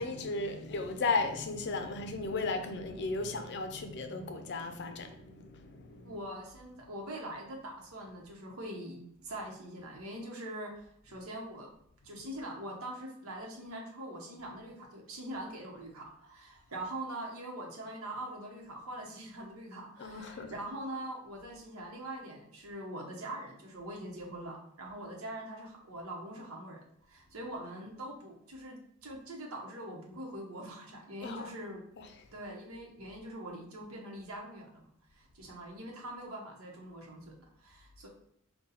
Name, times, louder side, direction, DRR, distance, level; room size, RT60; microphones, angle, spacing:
voice 1, 0.0-6.2 20.0-20.6 31.2-31.5 32.0-32.2, left 3 dB, 55° left, 0.5 m, -35 dB
voice 2, 6.0-11.7 12.0-26.8 27.1-28.8 29.0-31.8 32.3-37.3 37.6-38.1, right 1 dB, 75° right, 0.9 m, -43 dB
4.1 x 2.2 x 3.9 m
head